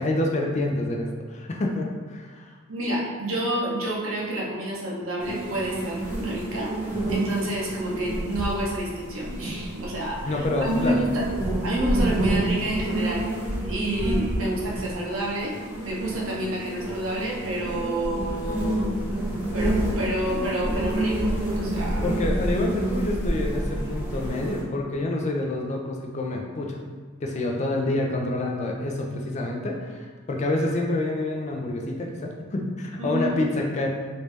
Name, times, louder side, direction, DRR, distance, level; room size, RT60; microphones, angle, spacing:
voice 1, 0.0-2.5 10.3-11.0 14.5-14.6 22.0-26.8 27.2-33.9, left 2 dB, 35° left, 1 dB, 0.4 m, -27 dB
voice 2, 2.7-6.8 7.1-11.3 11.6-13.3 13.7-15.5 15.8-19.0 19.5-22.1 33.0-33.5 33.8-33.9, right 1 dB, 75° right, -3 dB, 0.8 m, -29 dB
sound 1, 5.2-24.6, right 1 dB, 5° right, 1.1 m, -28 dB
3.2 x 2.7 x 3.2 m, 1.5 s
head